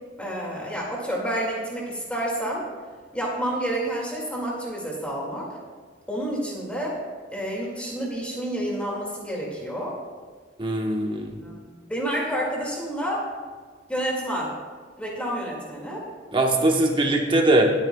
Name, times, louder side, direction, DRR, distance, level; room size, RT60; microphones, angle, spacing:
voice 1, 0.2-2.6 3.1-5.5 6.1-7.0 7.3-10.0 11.4-13.3 13.9-14.5 15.0-16.1, right 1 dB, 5° left, -4 dB, 2.2 m, -29 dB
voice 2, 10.6-11.4 16.3-17.7, right 2 dB, 30° right, 1 dB, 1.2 m, -21 dB
20.0 x 8.9 x 2.3 m, 1.5 s
head